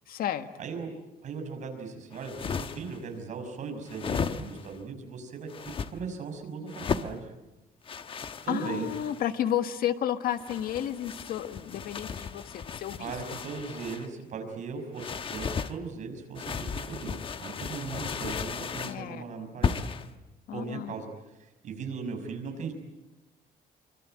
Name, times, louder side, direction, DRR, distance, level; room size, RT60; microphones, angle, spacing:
voice 1, 0.1-0.5 8.5-13.1 18.9-19.2 20.5-20.9, left 10 dB, 70° left, 9 dB, 1.6 m, -32 dB
voice 2, 0.6-0.9 1.2-5.5 5.9-7.2 8.5-8.9 13.0-19.8 20.5-21.1 21.4-22.7, right 5 dB, 50° right, 4 dB, 5.8 m, -38 dB
sound 1, 2.1-3.0 3.9-4.8 5.5-5.9 6.7-7.1 7.9-9.3 10.3-14.1 15.0-15.7 16.3-19.0 19.6-20.1, left 6 dB, 35° left, 1.1 m, -35 dB
26.0 x 25.0 x 9.0 m, 0.99 s
cardioid pair, 160°, 16 cm